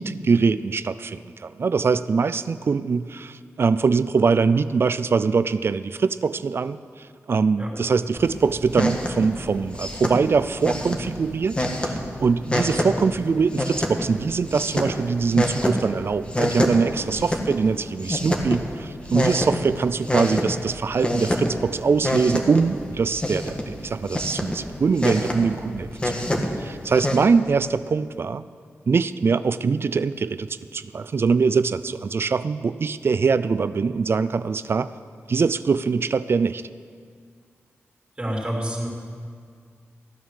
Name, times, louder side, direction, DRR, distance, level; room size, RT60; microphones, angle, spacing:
voice 1, 0.0-11.6 11.8-26.1 26.6-28.4 28.9-34.9 35.3-36.6, right 5 dB, 55° right, 14 dB, 0.4 m, -23 dB
sound 1, 8.1-27.2, left 1 dB, 25° left, 1.5 m, -28 dB
voice 2, 38.2-38.9, equal, 20° right, -1 dB, 3.1 m, -27 dB
14.5 x 9.3 x 6.5 m, 2.1 s
wide cardioid pair, 85°, 5 cm